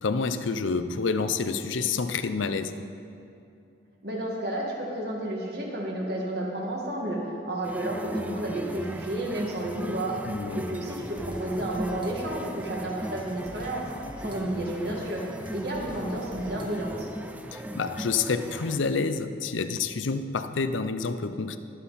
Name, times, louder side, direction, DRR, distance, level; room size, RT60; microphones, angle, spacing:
voice 1, 0.0-2.7 10.2-10.6 17.5-21.6, left 4 dB, 85° left, 10 dB, 0.6 m, -28 dB
voice 2, 4.0-10.2 10.5-13.9 14.2-15.2 15.5-17.1, right 1 dB, 55° right, -2 dB, 2.1 m, -31 dB
sound 1, 7.6-18.8, right 1 dB, 10° right, 0.3 m, -38 dB
sound 2, 10.3-17.2, equal, 25° right, 1.2 m, -47 dB
21.5 x 7.5 x 4.2 m, 2.6 s
head